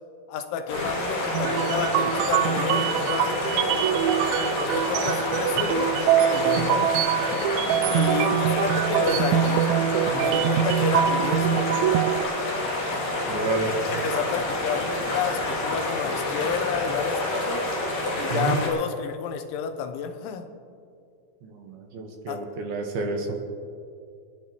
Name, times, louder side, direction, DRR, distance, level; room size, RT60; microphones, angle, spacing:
voice 1, 0.3-3.9 4.6-6.0 6.3-6.9 7.8-9.7 10.2-11.7 13.6-17.6 18.2-20.5 22.3-22.4, left 7 dB, 90° left, 7 dB, 3.3 m, -31 dB
sound 1, 0.7-18.7, left 1 dB, 60° left, 4.6 m, -28 dB
sound 2, 1.3-12.2, right 10 dB, 85° right, 2.9 m, -24 dB
voice 2, 13.3-13.7 18.3-18.6 21.4-23.3, right 3 dB, 65° right, 2 dB, 2.9 m, -29 dB
29.0 x 11.0 x 3.1 m, 2.4 s
omnidirectional pair, 5.3 m